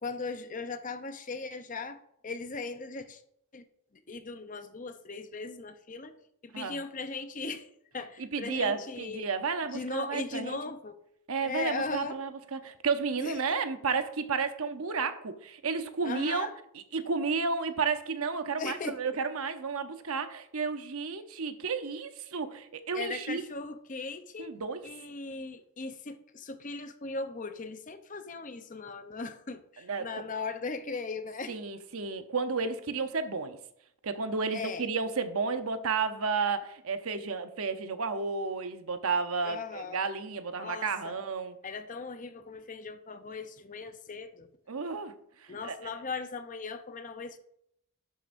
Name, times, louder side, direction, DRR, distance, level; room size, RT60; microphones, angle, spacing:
voice 1, 0.0-2.0 2.2-3.2 3.5-3.7 4.1-6.1 6.4-9.3 9.7-10.9 11.4-12.2 13.2-13.6 16.0-16.5 18.6-19.0 22.9-24.5 24.8-31.5 34.5-34.8 39.4-40.0 40.6-41.1 41.6-44.5 45.5-47.4, left 3 dB, 35° left, 0.7 m, -38 dB
voice 2, 8.2-10.6 11.3-16.5 16.7-23.4 24.4-24.9 29.8-30.2 31.5-33.6 34.0-41.6 44.7-45.2 45.4-45.8, right 4 dB, 75° right, 0.8 m, -32 dB
11.5 x 7.8 x 2.6 m
head